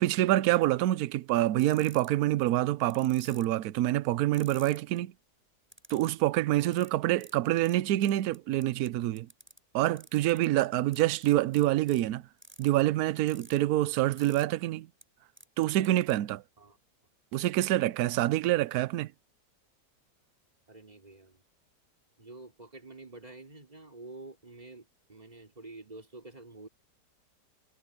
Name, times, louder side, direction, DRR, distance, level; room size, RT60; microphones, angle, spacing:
voice 1, 0.0-5.1 5.9-9.3 9.7-12.2 12.6-14.9 15.6-16.4 17.3-19.1, right 15 dB, 70° right, 1.0 m, -26 dB
sound 1, 1.6-2.2 2.9-3.6 4.3-5.0 5.7-6.2 6.7-6.9 7.2-7.3 7.6-7.7 8.0-8.9 9.2-9.6 10.0-10.5 10.9-12.0 12.4-12.7 13.3-13.6 14.2-14.4 15.0-15.1 15.4-16.1, equal, 5° right, 6.4 m, -51 dB
voice 2, 20.7-21.4 22.2-26.7, right 2 dB, 20° right, 4.7 m, -48 dB
omnidirectional pair, 1.8 m